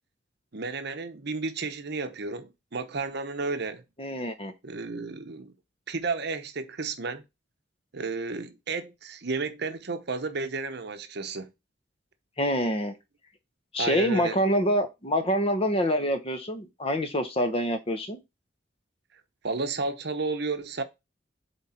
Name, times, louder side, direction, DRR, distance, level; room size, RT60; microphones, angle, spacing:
voice 1, 0.5-3.8 4.6-5.5 5.9-7.2 7.9-11.5 13.8-14.4 19.4-20.8, right 3 dB, 60° right, 0.9 m, -32 dB
voice 2, 4.0-4.5 12.4-12.9 13.7-18.2, equal, 30° left, 1.0 m, -26 dB
8.0 x 3.5 x 4.3 m
head